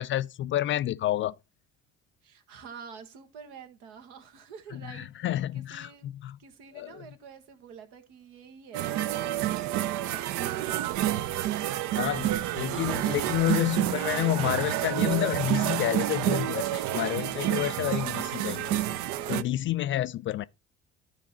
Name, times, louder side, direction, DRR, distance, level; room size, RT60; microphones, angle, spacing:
voice 1, 0.0-1.3 4.9-6.4 6.7-7.0 12.0-18.8 19.3-20.5, left 13 dB, 35° left, 0.4 m, -29 dB
voice 2, 2.2-6.1 6.4-11.6 12.5-12.9, right 7 dB, 65° right, 1.5 m, -48 dB
sound 1, 8.7-19.4, right 13 dB, 50° right, 0.6 m, -29 dB
12.5 x 4.4 x 4.2 m
figure-of-eight pair, 55°, 36 cm